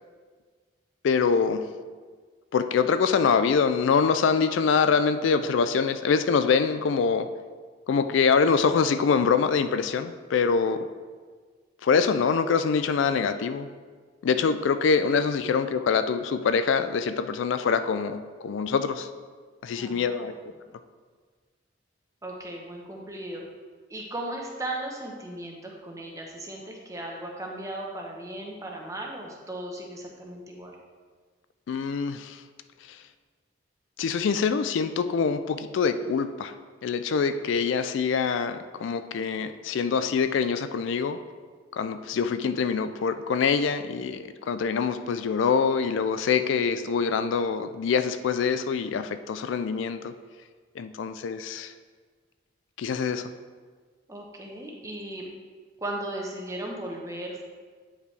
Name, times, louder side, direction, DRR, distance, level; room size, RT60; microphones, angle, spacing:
voice 1, 1.0-1.7 2.5-7.3 7.9-10.9 11.8-13.7 14.2-19.1 19.6-20.3 31.7-32.4 34.0-36.5 36.8-41.2 41.7-50.1 50.8-51.7 52.8-53.3, left 5 dB, 70° left, 10 dB, 0.3 m, -24 dB
voice 2, 19.7-20.3 20.6-20.7 22.2-23.4 23.9-30.7 54.1-55.3 55.8-57.4, right 1 dB, 15° right, -1 dB, 0.9 m, -36 dB
8.9 x 5.3 x 3.3 m, 1.5 s
head